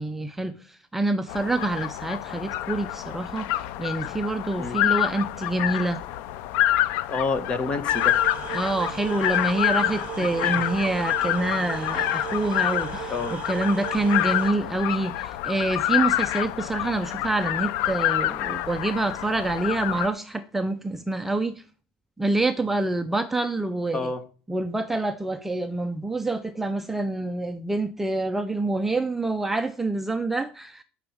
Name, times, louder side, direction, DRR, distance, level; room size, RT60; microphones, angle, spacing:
voice 1, 0.0-3.5 3.8-6.0 8.5-21.6 22.2-24.1 24.5-30.8, right 2 dB, 5° right, 0.5 m, -27 dB
sound 1, 1.3-20.1, left 13 dB, 70° left, 0.6 m, -27 dB
voice 2, 7.1-8.2 10.4-10.6 13.1-13.3 23.9-24.2, left 4 dB, 25° left, 1.3 m, -28 dB
sound 2, 7.9-14.5, right 12 dB, 35° right, 1.3 m, -37 dB
11.0 x 6.2 x 7.2 m
cardioid pair, 150°, 4 cm